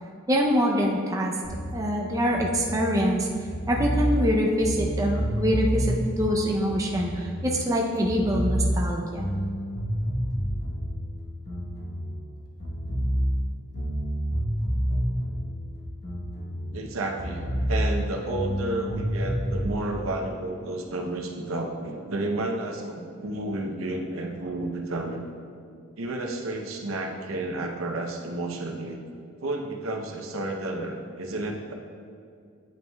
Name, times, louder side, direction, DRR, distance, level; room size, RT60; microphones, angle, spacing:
voice 1, 0.3-1.4 1.7-3.3 3.7-9.3, equal, 15° right, -1 dB, 0.5 m, -25 dB
sound 1, 1.4-7.8 8.0-12.3 12.6-16.9 17.2-19.7, equal, 50° left, 1.0 m, -29 dB
voice 2, 16.7-25.2 26.0-29.0 29.4-31.7, right 2 dB, 80° right, 3 dB, 0.7 m, -31 dB
9.0 x 5.4 x 2.2 m, 2.3 s
head